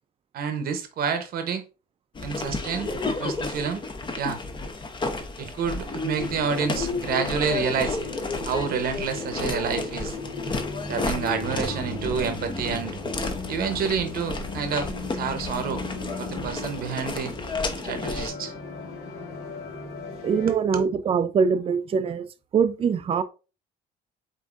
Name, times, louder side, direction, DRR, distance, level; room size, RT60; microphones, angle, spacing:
voice 1, 0.3-1.6 2.2-3.8 4.2-4.4 5.4-8.0 8.5-10.1 10.9-13.0 13.5-15.8 16.2-17.3 17.8-18.5 20.5-20.9, right 6 dB, 65° right, 0.8 m, -29 dB
sound 1, 2.2-18.3, left 3 dB, 30° left, 0.8 m, -32 dB
sound 2, 6.2-20.5, left 3 dB, 70° left, 1.4 m, -37 dB
voice 2, 20.2-22.3 22.5-23.2, right 6 dB, 35° right, 0.5 m, -23 dB
7.9 x 2.7 x 2.4 m
cardioid pair, 110°, 17 cm